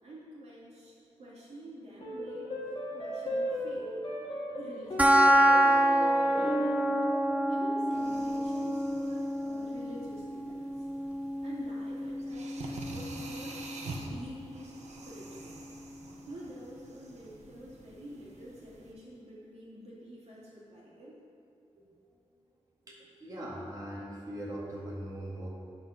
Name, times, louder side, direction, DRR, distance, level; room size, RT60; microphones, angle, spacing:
voice 1, 0.0-2.6 2.9-3.9 4.6-7.0 7.5-10.9 11.4-15.6 16.3-21.2, right 1 dB, 65° right, -6 dB, 2.6 m, -48 dB
sound 1, 2.0-10.6, equal, 45° left, 2.0 m, -37 dB
sound 2, 5.0-16.0, right 1 dB, 10° right, 0.4 m, -28 dB
sound 3, 7.9-18.9, right 2 dB, 80° right, 1.1 m, -47 dB
voice 2, 21.7-22.2 22.9-25.5, right 1 dB, 30° right, -5 dB, 2.1 m, -41 dB
9.6 x 6.6 x 5.8 m, 2.5 s
wide cardioid pair, 175°, 12 cm